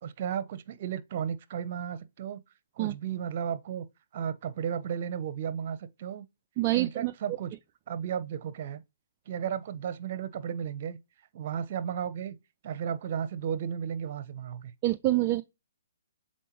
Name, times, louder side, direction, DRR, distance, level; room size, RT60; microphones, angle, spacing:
voice 1, 0.0-2.4 2.7-3.9 4.1-6.3 6.7-7.5 7.9-8.8 9.3-11.0 11.3-12.3 12.6-14.7, right 8 dB, 45° right, 0.8 m, -34 dB
voice 2, 6.6-7.1 14.8-15.4, right 16 dB, 30° right, 0.3 m, -26 dB
7.6 x 4.3 x 3.1 m
hypercardioid pair, 140°, 0 cm